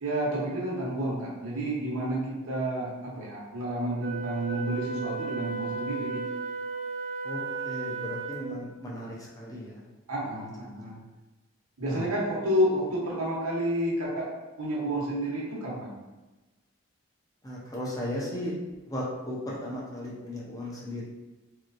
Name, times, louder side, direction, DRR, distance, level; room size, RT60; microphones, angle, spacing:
voice 1, 0.0-6.2 10.1-11.0 11.8-14.3 14.6-15.9, right 1 dB, 85° right, -4 dB, 1.0 m, -30 dB
Wind instrument woodwind instrument, 4.0-8.6, right 4 dB, 45° right, 0.4 m, -35 dB
voice 2, 7.2-9.8 10.6-10.9 11.8-12.1 17.4-18.5 18.9-21.0, left 1 dB, 15° left, -5 dB, 0.6 m, -36 dB
3.1 x 2.9 x 2.5 m, 1.1 s
head